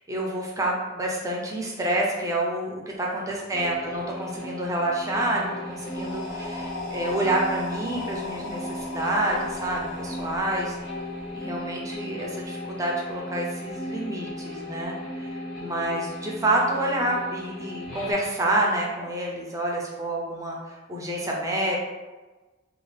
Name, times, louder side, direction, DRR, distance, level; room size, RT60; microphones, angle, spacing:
voice 1, 0.0-10.8 11.3-21.8, right 1 dB, 15° right, -2 dB, 0.4 m, -28 dB
sound 1, 3.5-18.1, left 1 dB, 40° left, 1.2 m, -36 dB
sound 2, 5.7-11.6, left 2 dB, 70° left, 0.7 m, -38 dB
2.6 x 2.3 x 3.2 m, 1.2 s
head